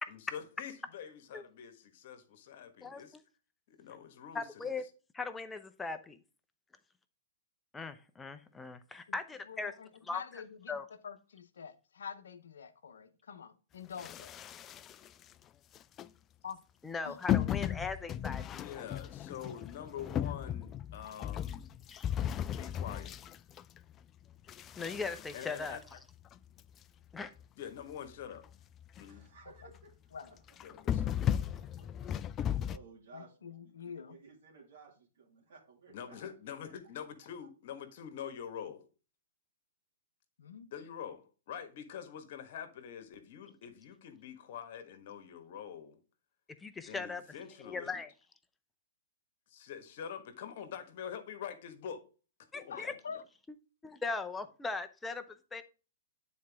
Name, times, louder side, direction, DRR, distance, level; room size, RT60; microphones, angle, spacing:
voice 1, 0.1-3.1 3.7-4.5 18.5-21.7 22.6-23.1 25.3-25.8 27.6-28.4 29.0-29.3 30.6-31.4 35.9-38.9 40.7-46.0 46.8-48.0 49.5-52.0 52.5-53.2, left 8 dB, 55° left, 1.4 m, -45 dB
voice 2, 2.8-3.2 4.3-4.8 5.1-6.2 7.7-9.7 10.1-10.2 10.7-10.8 16.8-18.6 21.9-22.1 24.8-25.8 27.1-27.3 46.6-47.2 47.6-48.1 52.5-52.9 53.8-55.6, left 4 dB, 10° left, 0.8 m, -39 dB
voice 3, 9.5-14.3 16.4-16.6 17.0-17.5 30.1-30.4 33.1-34.2 40.4-40.7 52.7-53.2, left 6 dB, 75° left, 0.8 m, -46 dB
sound 1, 14.0-15.2 15.7-16.1 17.3-24.0 24.5-26.6 27.1-27.2 27.4-27.5 27.9-28.0 28.4-28.5 28.8-29.2 29.6-29.8 30.5-32.8, left 10 dB, 25° left, 0.3 m, -36 dB
voice 4, 29.0-29.9 30.3-30.4 30.7-36.3, right 4 dB, 65° right, 2.3 m, -58 dB
9.4 x 4.4 x 3.6 m
hypercardioid pair, 115°, 0 cm